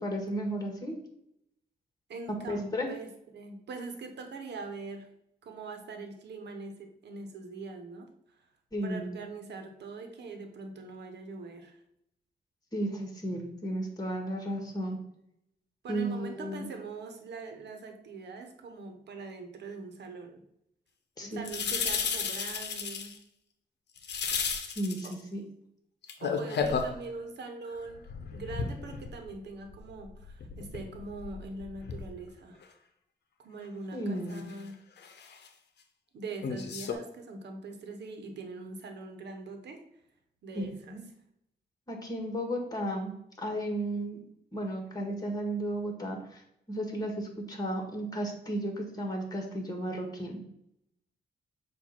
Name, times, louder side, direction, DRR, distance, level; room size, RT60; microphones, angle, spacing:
voice 1, 0.0-0.9 2.3-2.9 8.7-9.2 12.7-15.0 15.9-16.7 21.2-21.4 24.7-25.4 33.9-34.4 40.5-41.0 41.9-43.1 43.4-44.2 44.5-46.4 46.7-50.4, right 1 dB, 20° left, 2 dB, 1.7 m, -34 dB
voice 2, 2.1-5.1 5.4-8.1 8.8-11.8 15.8-20.4 21.2-23.1 25.0-25.2 26.2-32.6 33.4-34.7 36.1-39.8 40.4-41.0, right 3 dB, 90° right, 5 dB, 1.0 m, -42 dB
sound 1, 21.4-23.2 24.0-25.1 26.0-27.0 27.7-29.4 29.7-32.2 32.6-32.7 34.3-34.5 35.0-35.5 36.4-36.9, left 6 dB, 90° left, 0.8 m, -34 dB
7.3 x 2.6 x 5.8 m, 0.78 s
cardioid pair, 95°, 17 cm